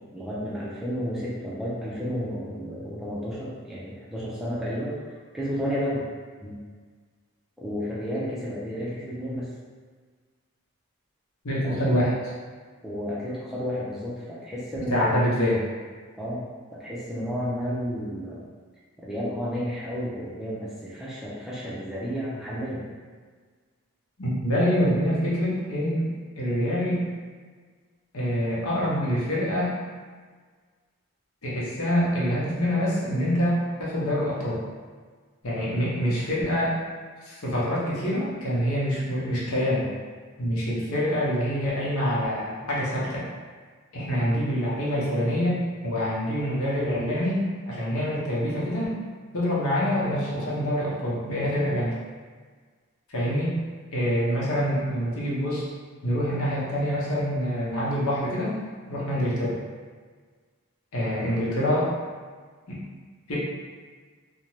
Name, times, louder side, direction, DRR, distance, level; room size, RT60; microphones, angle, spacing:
voice 1, 0.1-5.0 5.3-6.0 6.4-6.6 7.6-9.5 11.6-11.7 12.8-15.2 16.2-16.5 16.8-18.4 19.0-22.8, equal, ahead, -8 dB, 0.4 m, -31 dB
voice 2, 11.4-12.1 14.9-15.6 24.2-27.0 28.1-29.8 31.4-34.6 35.4-36.7 37.2-39.9 40.4-43.3 43.9-49.0 49.3-51.9 53.1-53.5 53.9-55.6 56.0-58.5 58.9-59.6 60.9-61.9 62.7-62.8 63.3-63.4, equal, 80° left, -6 dB, 0.8 m, -26 dB
2.5 x 2.1 x 3.0 m, 1.5 s
head